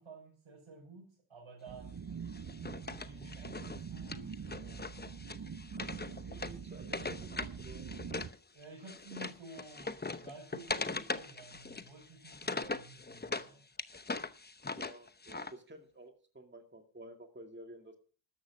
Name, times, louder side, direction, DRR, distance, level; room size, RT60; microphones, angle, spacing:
voice 1, 0.0-2.1 3.0-5.2 8.5-13.6, right 3 dB, 80° right, -4 dB, 6.9 m, -52 dB
sound 1, 1.7-8.3, right 6 dB, 40° right, 0.8 m, -44 dB
Wood, 2.3-8.4 8.6-13.5 13.8-15.5, left 3 dB, 20° left, 0.9 m, -41 dB
voice 2, 6.1-7.9 14.8-18.0, right 1 dB, 20° right, 4 dB, 2.3 m, -52 dB
13.5 x 11.0 x 6.3 m, 0.41 s
cardioid pair, 70°, 48 cm